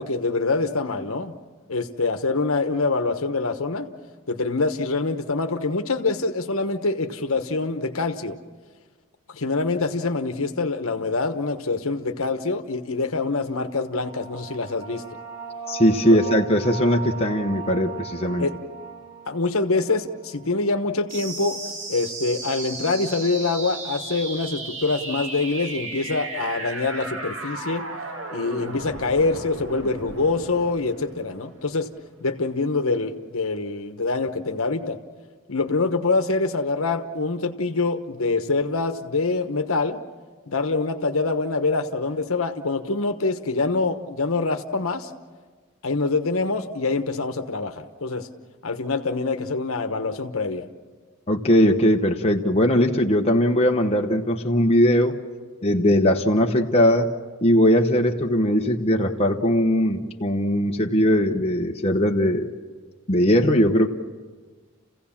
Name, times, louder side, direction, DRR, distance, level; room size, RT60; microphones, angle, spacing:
voice 1, 0.0-1.4 1.7-3.9 4.3-8.4 9.3-15.0 16.1-16.3 18.4-18.6 19.3-21.6 21.9-27.8 28.3-31.9 32.2-35.0 35.5-40.0 40.5-45.1 45.8-48.3 48.6-50.7, left 3 dB, 75° left, 7 dB, 1.2 m, -25 dB
sound 1, 13.8-21.1, right 6 dB, 15° right, 2.6 m, -38 dB
voice 2, 15.7-18.5 51.3-55.2 55.6-57.1 57.4-62.5 63.1-63.9, equal, 25° left, 1 dB, 1.0 m, -20 dB
sound 2, 21.1-32.1, right 3 dB, 60° right, 2.3 m, -35 dB
30.0 x 16.0 x 7.3 m, 1.5 s
head